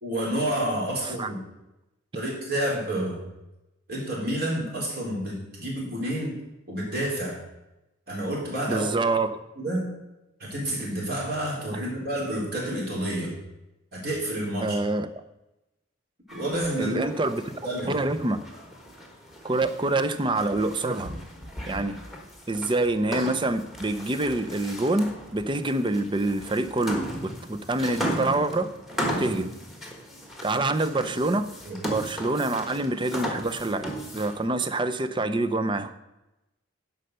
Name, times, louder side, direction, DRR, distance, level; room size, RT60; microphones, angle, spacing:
voice 1, 0.0-1.4 2.1-3.2 3.9-6.3 6.7-7.4 8.1-8.9 9.6-9.9 10.4-13.3 13.9-14.8 16.3-17.1 17.6-18.0 31.6-31.8, right 1 dB, 50° right, -3 dB, 3.7 m, -29 dB
voice 2, 8.7-9.4 14.6-15.2 16.8-17.4 17.9-18.4 19.4-21.1 21.7-22.0 22.5-28.7 29.1-29.5 30.4-31.5 31.8-35.9, right 2 dB, 25° right, 10 dB, 0.5 m, -26 dB
sound 1, 16.3-34.5, equal, ahead, 1.4 m, -37 dB
11.0 x 5.5 x 6.5 m, 0.95 s
head